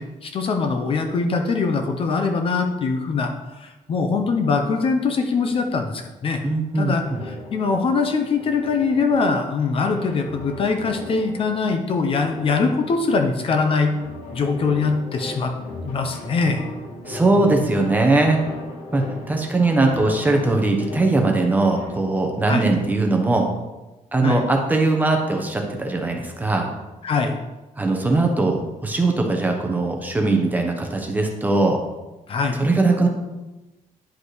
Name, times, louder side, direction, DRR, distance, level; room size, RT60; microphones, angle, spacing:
voice 1, 0.0-3.3 3.6-6.4 6.8-13.9 14.3-15.5 15.8-16.6 22.5-22.7 24.2-24.4 27.0-27.3 32.3-32.6, left 4 dB, 45° left, 5 dB, 0.7 m, -22 dB
voice 2, 6.4-7.2 17.1-18.4 18.9-23.5 24.1-26.7 27.8-31.8 32.5-33.1, right 2 dB, 15° right, 2 dB, 0.9 m, -20 dB
sound 1, 7.0-22.0, left 2 dB, 70° left, 2.4 m, -38 dB
10.0 x 5.3 x 3.1 m, 1.1 s
cardioid pair, 175°, 14 cm